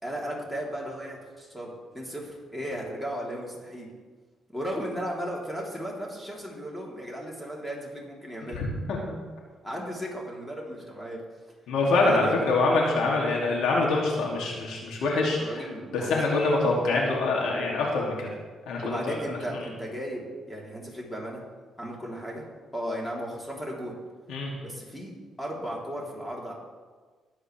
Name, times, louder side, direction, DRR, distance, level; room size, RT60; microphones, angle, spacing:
voice 1, 0.0-3.9 4.5-8.7 9.6-11.2 12.0-12.4 15.4-16.3 18.8-21.4 21.8-22.5 22.7-23.9 24.6-25.1 25.4-26.5, equal, 5° left, -3 dB, 3.4 m, -35 dB
voice 2, 8.5-9.2 11.7-15.6 15.9-18.3 18.7-19.2 24.3-24.5, left 3 dB, 80° left, -2 dB, 2.6 m, -25 dB
20.5 x 8.2 x 3.4 m, 1.4 s
cardioid pair, 90°, 0 cm